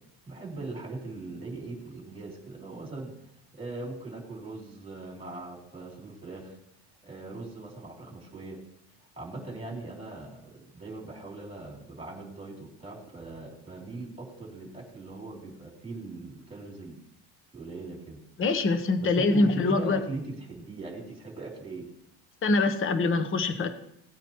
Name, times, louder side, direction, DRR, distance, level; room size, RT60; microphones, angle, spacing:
voice 1, 0.3-3.1 3.5-6.6 7.0-8.6 9.2-17.0 17.5-18.2 19.0-21.8, right 2 dB, 15° right, -1 dB, 3.2 m, -40 dB
voice 2, 18.4-20.0 22.4-23.7, left 3 dB, 30° left, 9 dB, 1.0 m, -24 dB
17.5 x 8.9 x 3.1 m, 0.74 s
cardioid pair, 140°, 40 cm